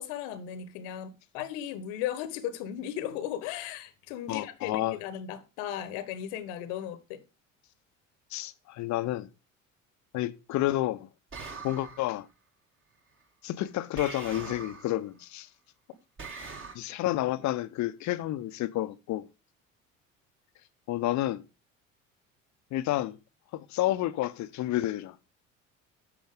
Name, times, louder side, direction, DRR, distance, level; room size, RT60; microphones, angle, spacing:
voice 1, 0.0-7.2, left 10 dB, 60° left, 1.2 m, -36 dB
voice 2, 4.3-5.0 8.3-9.3 10.1-11.1 11.6-12.3 13.4-15.5 16.7-19.3 20.9-21.4 22.7-23.2 23.5-25.2, left 15 dB, 45° left, 0.9 m, -30 dB
sound 1, 11.3-12.2 14.0-15.0 16.2-16.7, right 4 dB, 30° right, 2.3 m, -42 dB
11.0 x 7.0 x 3.6 m
figure-of-eight pair, 60°, 40 cm